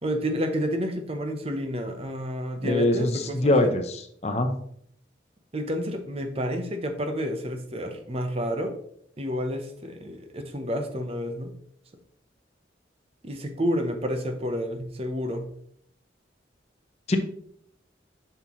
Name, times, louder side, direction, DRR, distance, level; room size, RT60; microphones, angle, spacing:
voice 1, 0.0-3.7 5.5-8.7 9.2-11.5 13.2-15.5, equal, 35° right, 6 dB, 0.8 m, -30 dB
voice 2, 2.6-4.5 17.1-17.2, left 1 dB, 35° left, 6 dB, 0.7 m, -23 dB
7.3 x 5.8 x 3.1 m, 0.67 s
head